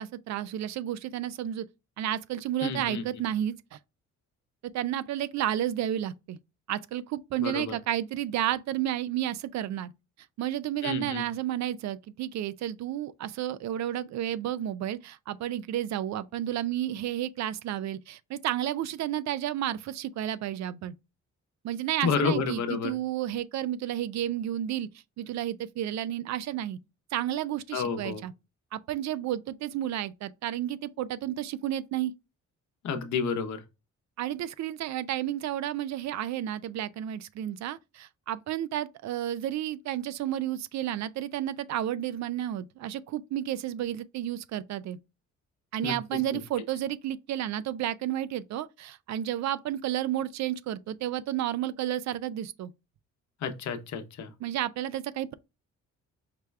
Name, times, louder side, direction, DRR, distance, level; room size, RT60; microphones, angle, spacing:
voice 1, 0.0-1.7 2.0-3.8 4.6-6.4 6.7-9.9 10.4-20.9 21.6-24.9 25.2-26.8 27.1-28.3 28.7-32.1 34.2-45.0 45.7-52.7 54.4-55.3, right 12 dB, 65° right, 0.4 m, -31 dB
voice 2, 2.6-3.0 7.4-7.7 10.8-11.2 22.0-22.9 27.7-28.2 32.8-33.6 45.8-45.9 53.4-54.3, left 5 dB, 65° left, 0.8 m, -30 dB
5.0 x 2.2 x 3.2 m
cardioid pair, 90°, 30 cm